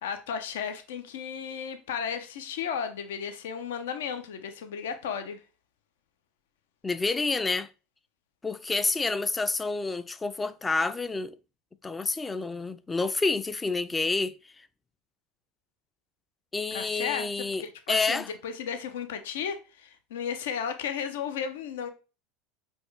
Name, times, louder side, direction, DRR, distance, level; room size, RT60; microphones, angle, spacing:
voice 1, 0.0-5.4 16.7-17.3 17.6-21.9, left 7 dB, 80° left, 0.5 m, -34 dB
voice 2, 6.8-7.7 8.4-11.4 11.8-14.4 16.5-18.3, left 3 dB, 20° left, 0.3 m, -28 dB
4.3 x 2.3 x 3.2 m
hypercardioid pair, 90°, 0 cm